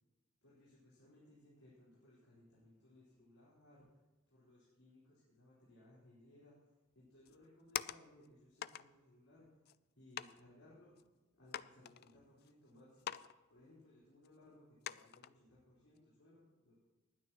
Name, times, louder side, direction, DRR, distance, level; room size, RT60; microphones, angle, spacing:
voice 1, 0.4-4.0 4.3-9.5 9.9-11.0 11.3-13.2 13.5-16.8, left 1 dB, 80° left, -9 dB, 4.3 m, -64 dB
sound 1, 7.3-8.3 8.6-8.9 9.7-9.8 10.2-10.4 11.0-11.1 11.5-12.5 13.0-13.3 13.6-13.7 14.2-14.3 14.8-15.3 15.8-16.0, left 11 dB, 45° left, 0.3 m, -44 dB
20.0 x 9.3 x 3.0 m, 1.2 s
head